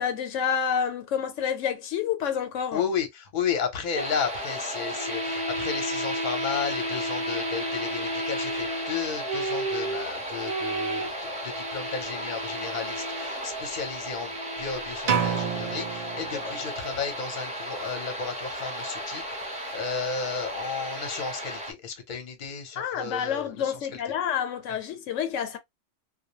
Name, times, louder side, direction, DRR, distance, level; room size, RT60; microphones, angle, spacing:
voice 1, 0.0-2.8 16.4-16.5 22.8-25.6, left 8 dB, 85° left, 0.9 m, -29 dB
voice 2, 2.7-14.3 14.6-24.0 24.7-24.8, left 6 dB, 45° left, 0.8 m, -33 dB
sound 1, 3.9-21.7, right 1 dB, 5° right, 0.7 m, -32 dB
sound 2, 15.1-17.0, right 7 dB, 60° right, 0.4 m, -29 dB
2.2 x 2.1 x 2.9 m
omnidirectional pair, 1.3 m